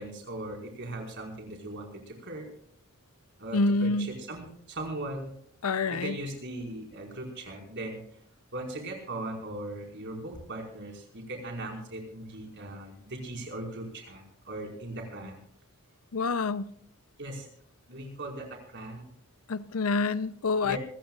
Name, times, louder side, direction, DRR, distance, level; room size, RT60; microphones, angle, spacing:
voice 1, 0.0-2.4 3.4-5.3 5.9-8.0 8.5-15.4 17.2-17.5 17.9-19.1 20.6-20.8, right 1 dB, 55° right, 5.1 m, -39 dB
voice 2, 3.5-4.1 5.6-6.2 16.1-16.7 19.5-20.8, left 3 dB, 70° left, 0.7 m, -27 dB
26.5 x 15.0 x 2.4 m
head